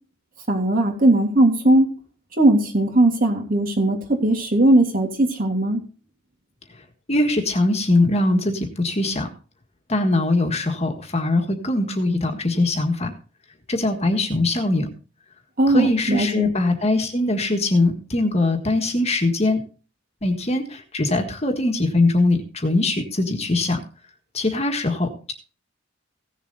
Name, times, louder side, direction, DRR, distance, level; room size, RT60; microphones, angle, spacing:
voice 1, 0.5-1.9 2.4-5.8 15.6-16.5, right 1 dB, 45° right, 2 dB, 3.0 m, -18 dB
voice 2, 7.1-9.3 9.9-13.1 13.7-14.9 15.7-19.6 20.2-23.8 24.3-25.3, left 2 dB, 30° left, 5 dB, 1.6 m, -21 dB
16.5 x 7.2 x 4.0 m, 0.37 s
head